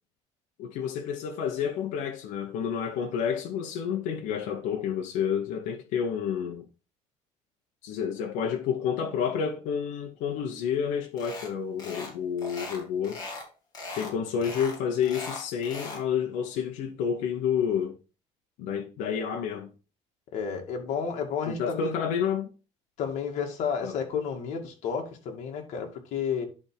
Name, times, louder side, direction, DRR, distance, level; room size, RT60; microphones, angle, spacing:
voice 1, 0.6-6.7 7.8-13.2 13.9-18.0 18.6-19.7 21.5-22.5 23.8-24.0, left 7 dB, 90° left, 1.0 m, -29 dB
sound 1, 11.2-11.5 11.8-12.1 12.4-13.5 13.7-14.1 14.4-16.0, left 2 dB, 30° left, 2.5 m, -39 dB
voice 2, 20.3-21.9 23.0-26.4, left 6 dB, 70° left, 2.1 m, -31 dB
11.0 x 3.6 x 4.7 m
cardioid pair, 165°, 13 cm